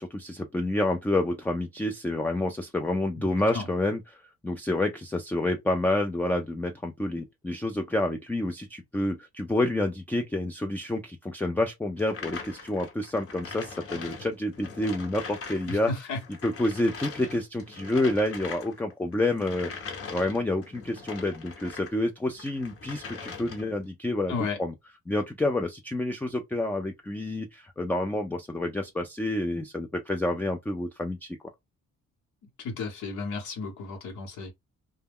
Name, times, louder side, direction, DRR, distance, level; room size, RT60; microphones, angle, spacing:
voice 1, 0.0-4.0 4.4-15.9 16.4-24.3 24.6-24.7 25.1-31.4, left 1 dB, 5° left, 0.3 m, -28 dB
sound 1, 12.0-15.8 16.1-22.0 22.3-23.8, left 5 dB, 50° left, 0.9 m, -41 dB
voice 2, 15.7-16.2 24.3-24.6 32.6-34.5, left 4 dB, 75° left, 1.0 m, -33 dB
2.1 x 2.1 x 3.4 m
cardioid pair, 90°, 30 cm